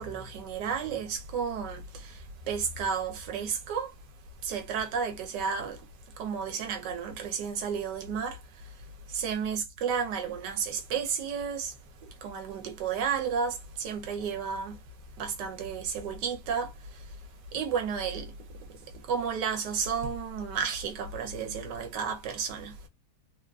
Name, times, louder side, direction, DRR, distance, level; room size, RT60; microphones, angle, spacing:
voice 1, 0.0-3.9 4.4-5.8 6.2-8.7 9.1-11.7 12.2-14.8 15.2-17.1 17.5-18.3 19.0-22.8, right 6 dB, 90° right, 1.4 m, -32 dB
3.5 x 2.3 x 2.3 m
omnidirectional pair, 1.8 m